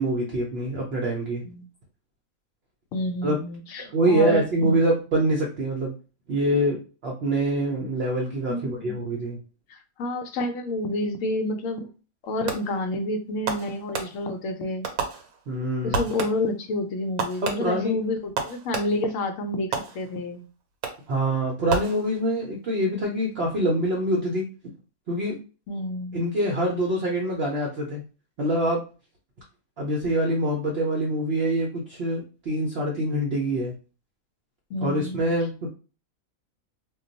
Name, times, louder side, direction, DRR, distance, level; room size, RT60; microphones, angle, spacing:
voice 1, 0.0-1.4 3.2-3.4 3.8-5.9 6.3-9.4 15.5-16.0 17.4-18.0 21.1-24.5 25.1-25.4 26.1-28.0 28.4-28.8 29.8-33.7 34.8-35.7, right 1 dB, 55° right, -1 dB, 0.7 m, -25 dB
voice 2, 2.9-4.9 8.5-9.1 10.0-11.9 12.2-14.9 15.8-20.4 25.7-26.2 34.7-35.2, left 2 dB, 70° left, 7 dB, 0.9 m, -29 dB
Fireworks, 12.5-12.9 13.5-14.5 14.8-15.6 15.9-16.6 17.2-19.2 19.7-20.3 20.8-21.2 21.7-22.4, right 5 dB, 80° right, 1.1 m, -32 dB
2.3 x 2.2 x 3.8 m, 0.34 s
omnidirectional pair, 1.5 m